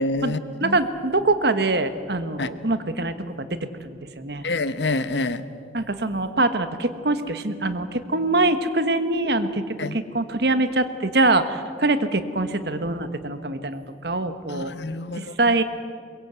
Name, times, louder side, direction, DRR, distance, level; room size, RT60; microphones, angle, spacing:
voice 1, 0.0-0.8 2.4-2.5 4.4-5.4 9.8-10.0 14.5-15.5, left 2 dB, 75° left, 13 dB, 1.0 m, -27 dB
voice 2, 0.6-4.4 5.7-14.7 15.1-15.6, right 2 dB, 65° right, 10 dB, 1.4 m, -24 dB
22.5 x 22.0 x 8.2 m, 2.3 s
head